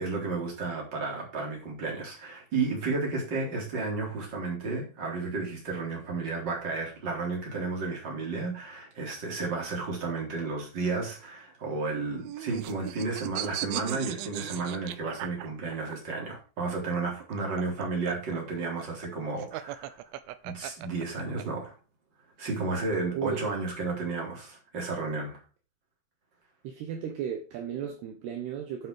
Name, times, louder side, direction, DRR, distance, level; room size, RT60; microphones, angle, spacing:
voice 1, 0.0-20.0 20.4-21.7 22.4-25.4, right 3 dB, 25° right, 4.0 m, -32 dB
sound 1, 11.9-16.0 17.2-21.4, right 14 dB, 85° right, 3.2 m, -37 dB
voice 2, 23.1-23.5 26.6-28.9, right 8 dB, 70° right, 3.0 m, -34 dB
9.4 x 7.6 x 4.8 m
omnidirectional pair, 5.4 m